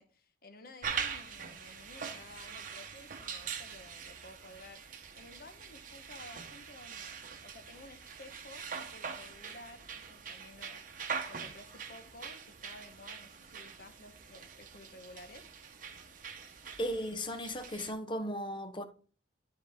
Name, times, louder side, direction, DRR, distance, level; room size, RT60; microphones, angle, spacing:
voice 1, 0.0-4.8 5.1-7.1 7.4-10.8 11.3-15.5, left 2 dB, 55° left, 1.1 m, -53 dB
sound 1, 0.8-17.9, right 6 dB, 50° right, 1.0 m, -43 dB
voice 2, 16.8-18.8, equal, 30° left, 0.9 m, -36 dB
12.0 x 4.2 x 3.5 m
head